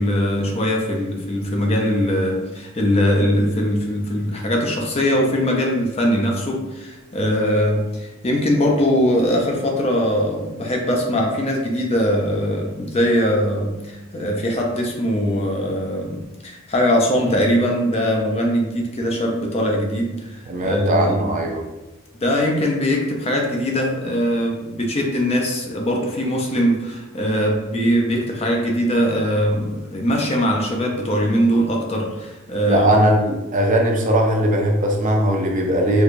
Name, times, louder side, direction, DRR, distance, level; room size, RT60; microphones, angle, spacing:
voice 1, 0.0-21.2 22.2-32.9, equal, 30° left, 0 dB, 0.5 m, -21 dB
voice 2, 20.5-21.6 32.6-36.0, right 1 dB, 35° right, 1 dB, 0.4 m, -19 dB
4.5 x 2.2 x 2.5 m, 1.0 s
head